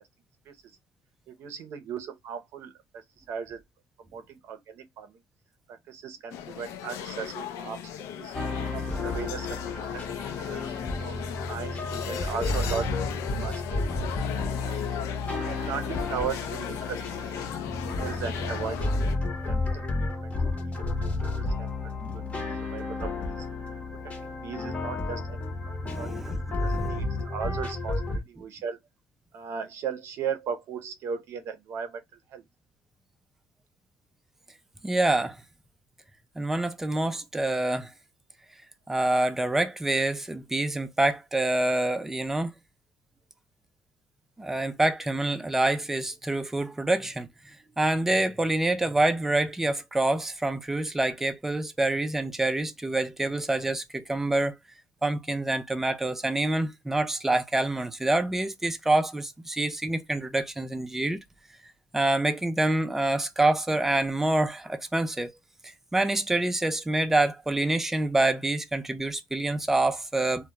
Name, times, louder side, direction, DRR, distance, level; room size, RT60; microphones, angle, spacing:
voice 1, 1.3-3.6 4.0-5.2 5.7-7.8 8.1-8.4 8.7-10.0 10.5-10.6 11.0-11.2 11.5-13.8 14.1-14.9 15.5-17.4 17.8-19.0 19.5-19.8 20.2-20.3 20.8-21.7 22.1-22.2 22.7-23.5 24.0-25.5 26.0-26.1 26.6-28.8 29.3-32.0 32.3-32.4, right 7 dB, 60° right, 0.6 m, -37 dB
sound 1, 6.3-19.2, left 9 dB, 75° left, 0.4 m, -37 dB
sound 2, 8.3-28.2, left 2 dB, 25° left, 0.7 m, -31 dB
voice 2, 25.8-27.2 34.8-35.4 36.4-37.9 38.9-42.5 44.4-54.6 55.0-61.2 61.9-65.3 65.6-70.5, right 2 dB, 5° right, 0.3 m, -26 dB
2.2 x 2.1 x 2.8 m
cardioid pair, 135°, 5 cm